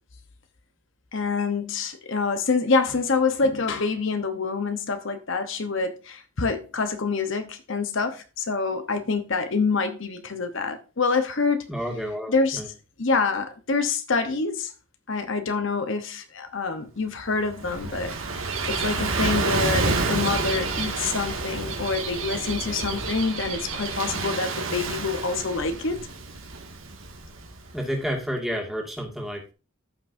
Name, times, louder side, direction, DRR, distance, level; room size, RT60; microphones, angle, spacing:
voice 1, 1.1-11.7 12.3-12.6 13.0-14.7 15.1-26.1, left 4 dB, 60° left, 0.9 m, -26 dB
voice 2, 11.7-12.7 27.7-29.5, equal, ahead, 2.0 m, -30 dB
Gull seagull / Waves surf, 17.3-27.8, right 3 dB, 70° right, 2.0 m, -29 dB
13.5 x 5.9 x 2.6 m
head